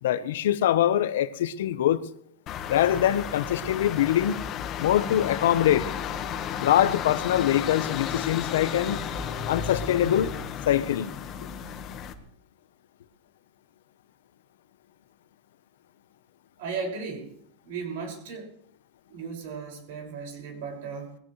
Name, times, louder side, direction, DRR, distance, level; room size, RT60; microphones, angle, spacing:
voice 1, 0.0-2.0 2.7-4.4 4.8-5.9 6.6-9.0 9.5-10.3 10.7-11.1, left 11 dB, 85° left, 1.0 m, -23 dB
sound 1, 2.5-12.1, left 8 dB, 35° left, 1.4 m, -33 dB
sound 2, 8.6-11.2, right 3 dB, 25° right, 3.1 m, -47 dB
voice 2, 16.6-17.3 17.6-18.5 19.1-21.2, right 5 dB, 70° right, 5.8 m, -36 dB
21.5 x 16.5 x 3.2 m
supercardioid pair, 145°, 0 cm